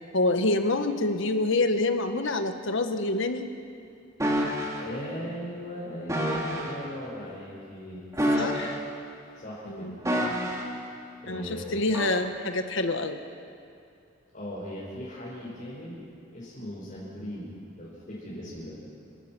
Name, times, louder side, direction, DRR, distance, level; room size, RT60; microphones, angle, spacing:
voice 1, 0.1-3.5 8.4-8.8 9.6-9.9 11.3-13.2, left 2 dB, 65° left, 8 dB, 1.4 m, -27 dB
sound 1, 4.2-4.8 6.1-6.7 8.1-9.0 10.0-10.8 11.9-12.2, equal, 15° right, 2.6 m, -28 dB
voice 2, 4.8-8.1 9.3-10.0 11.2-11.8 14.3-16.0 16.3-18.8, equal, 40° left, -8 dB, 5.9 m, -38 dB
30.0 x 18.0 x 6.1 m, 2.5 s
head